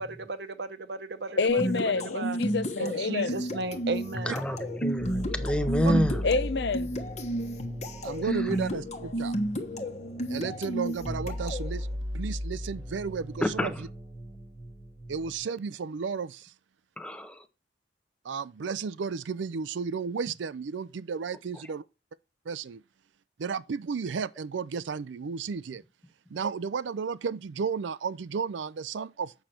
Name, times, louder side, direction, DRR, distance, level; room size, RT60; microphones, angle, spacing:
voice 1, 0.0-1.6 2.1-2.4 2.8-4.4, right 3 dB, 65° right, 0.8 m, -35 dB
voice 2, 1.4-3.4 6.2-6.9, left 4 dB, 65° left, 0.6 m, -28 dB
sound 1, 1.5-11.7, equal, 35° left, 1.3 m, -32 dB
sound 2, 3.5-15.4, equal, 20° right, 1.3 m, -38 dB
voice 3, 4.3-6.2 8.3-8.5 13.4-13.8 17.0-17.5, equal, 5° left, 0.8 m, -28 dB
voice 4, 8.0-9.4 10.3-11.9 12.1-13.7 15.1-16.5 18.2-21.8 22.5-22.8 23.4-25.8 26.3-29.3, right 5 dB, 80° right, 0.4 m, -33 dB
8.1 x 6.4 x 4.3 m
head